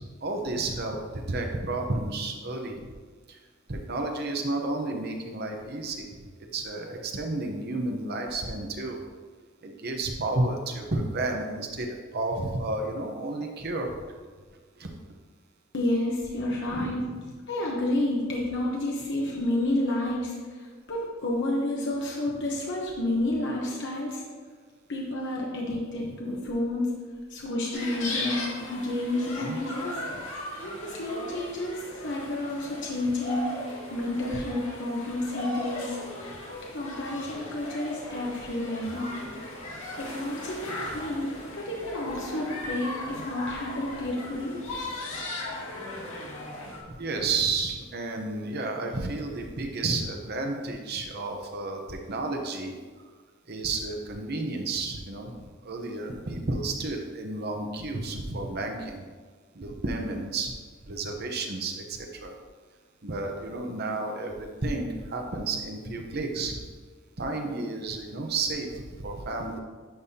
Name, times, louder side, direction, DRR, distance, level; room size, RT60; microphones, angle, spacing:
voice 1, 0.2-2.9 3.3-3.4 3.7-6.1 6.5-9.0 9.6-11.9 12.1-13.9 14.8-14.9 16.7-17.2 25.7-25.8 29.1-29.6 36.3-36.4 46.9-52.8 53.5-59.0 59.5-60.5 60.9-62.3 63.0-66.6 67.2-69.6, right 2 dB, 55° right, 3 dB, 0.9 m, -31 dB
voice 2, 15.7-17.1 17.5-24.2 24.9-26.9 27.3-29.9 30.9-33.5 33.9-36.0 36.2-39.3 40.0-44.6, left 1 dB, 60° left, -2 dB, 1.1 m, -30 dB
sound 1, 27.7-46.8, left 1 dB, 80° left, 2.2 m, -37 dB
10.5 x 5.5 x 2.9 m, 1.5 s
head